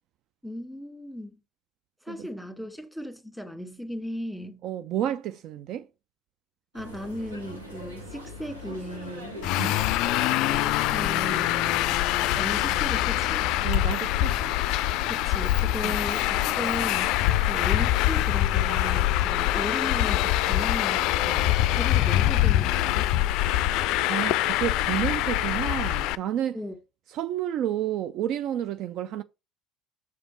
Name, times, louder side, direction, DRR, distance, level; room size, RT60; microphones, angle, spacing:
voice 1, 0.4-1.4 2.0-4.6 6.7-9.4 10.9-11.6 12.4-13.5 15.1-17.2 17.5-21.1 21.7-23.2 26.5-26.8, equal, 5° right, 1.8 m, -36 dB
voice 2, 4.6-5.9 9.5-9.8 13.6-14.6 15.8-16.0 21.3-21.5 23.4-23.8 24.1-26.6 27.1-29.2, right 11 dB, 50° right, 0.3 m, -31 dB
sound 1, 6.7-26.0, equal, 85° right, 1.5 m, -42 dB
Traffic noise roadway noise, 9.4-26.2, left 15 dB, 55° left, 0.3 m, -24 dB
6.8 x 4.7 x 4.4 m
figure-of-eight pair, 60°, 0 cm